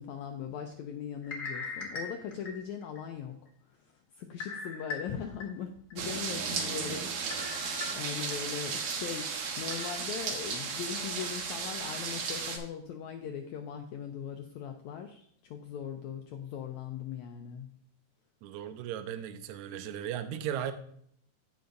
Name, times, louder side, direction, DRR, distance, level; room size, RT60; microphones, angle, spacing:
voice 1, 0.0-3.4 3.7-17.7, left 8 dB, 80° left, 1.7 m, -40 dB
sound 1, 1.2-3.0 3.5-3.6 4.4-5.4 5.9-6.0 7.3-8.4 8.8-8.9 9.7-10.0, left 3 dB, 35° left, 1.7 m, -40 dB
sound 2, 6.0-12.6, right 5 dB, 65° right, 1.9 m, -35 dB
voice 2, 6.3-7.8 18.4-20.7, right 10 dB, 80° right, 1.7 m, -38 dB
15.5 x 5.8 x 2.6 m
omnidirectional pair, 4.0 m